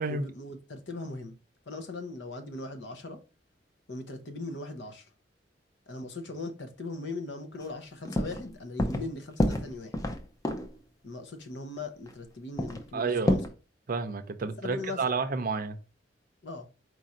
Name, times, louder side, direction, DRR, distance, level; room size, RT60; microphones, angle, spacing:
voice 1, 0.1-1.4 1.7-3.2 3.9-5.1 5.9-10.1 11.0-13.4 14.6-15.0 16.4-16.7, left 2 dB, 70° left, 0.8 m, -39 dB
sound 1, 7.6-7.7 8.0-8.5 8.8-9.1 9.4-10.8 11.8-11.9 12.1-12.2 12.6-13.5, left 1 dB, 20° left, 0.6 m, -28 dB
voice 2, 12.9-13.4 13.9-15.8, right 4 dB, 50° right, 0.5 m, -30 dB
4.6 x 2.5 x 4.1 m
head